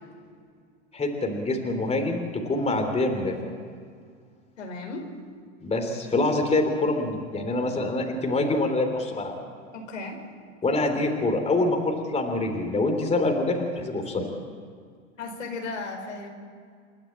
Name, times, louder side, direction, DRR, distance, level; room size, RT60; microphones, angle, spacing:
voice 1, 0.9-3.5 5.6-9.3 10.6-14.3, left 2 dB, 15° left, 3 dB, 3.3 m, -25 dB
voice 2, 4.6-5.1 9.7-10.2 15.2-16.3, left 3 dB, 85° left, 2 dB, 4.8 m, -35 dB
28.5 x 12.0 x 8.8 m, 2.1 s
hypercardioid pair, 100°, 37 cm